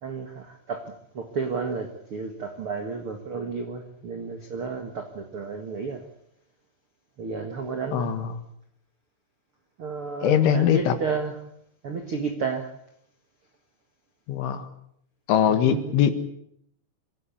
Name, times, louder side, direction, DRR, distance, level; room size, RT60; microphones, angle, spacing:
voice 1, 0.0-6.1 7.2-8.1 9.8-11.4 11.8-12.7 15.5-16.0, right 5 dB, 65° right, 5 dB, 1.3 m, -32 dB
voice 2, 7.9-8.3 10.2-10.9 14.3-14.7 15.3-16.1, left 9 dB, 75° left, 8 dB, 4.1 m, -21 dB
25.5 x 16.5 x 8.5 m, 0.72 s
omnidirectional pair, 5.6 m